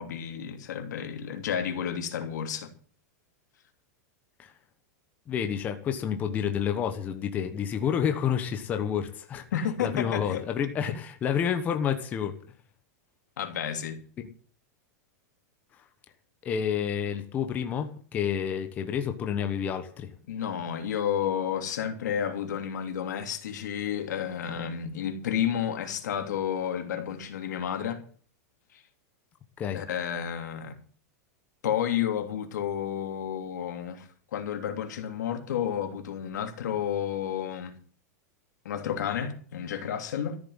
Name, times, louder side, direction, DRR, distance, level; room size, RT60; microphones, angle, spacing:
voice 1, 0.0-2.7 9.5-10.4 13.4-14.0 20.3-28.0 28.7-28.8 29.7-30.8 31.6-37.7 38.6-40.4, left 9 dB, 90° left, 3.0 m, -31 dB
voice 2, 5.3-12.4 14.2-14.3 16.4-20.1 29.6-29.8, left 8 dB, 15° left, 1.1 m, -29 dB
14.0 x 7.7 x 9.4 m
supercardioid pair, 180°, 9 cm